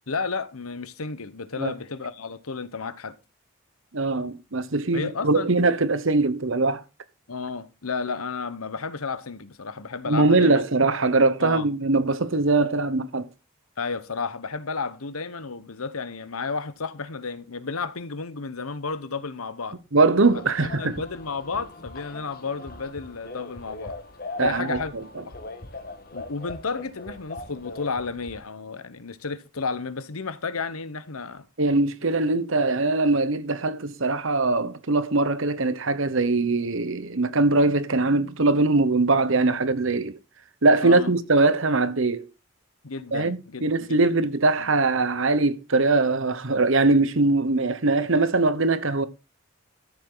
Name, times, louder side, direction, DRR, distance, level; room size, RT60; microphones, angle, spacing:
voice 1, 0.1-3.1 4.9-5.5 7.3-10.6 11.4-11.6 13.8-19.8 20.6-24.0 24.4-24.9 26.1-31.4 40.8-41.1 42.8-44.1 44.6-44.7, left 4 dB, 85° left, 1.1 m, -32 dB
voice 2, 3.9-6.8 10.1-13.3 19.9-20.9 24.4-25.0 31.6-40.2 40.6-42.2 43.1-49.1, right 3 dB, 65° right, 1.1 m, -22 dB
sound 1, 20.2-28.4, left 2 dB, 45° left, 1.6 m, -40 dB
13.5 x 7.3 x 3.9 m
head